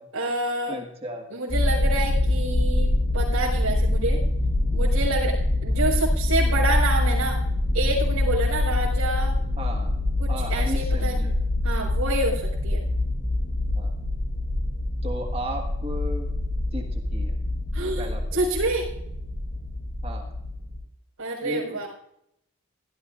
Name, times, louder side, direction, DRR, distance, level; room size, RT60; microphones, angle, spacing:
voice 1, 0.1-0.7 1.3-4.2 4.7-5.4 5.6-7.4 7.7-9.3 10.2-11.3 11.6-12.8 17.7-18.1 18.3-18.9 21.2-21.9, right 2 dB, 85° right, -8 dB, 4.8 m, -27 dB
voice 2, 0.7-1.3 9.6-9.9 10.3-11.3 13.8-13.9 15.0-16.3 16.7-17.4 18.0-18.2 20.0-20.3 21.4-21.8, right 1 dB, 25° right, 2 dB, 1.7 m, -35 dB
sound 1, 1.5-20.8, left 1 dB, 45° left, 5.8 m, -25 dB
17.0 x 14.5 x 2.6 m, 0.75 s
head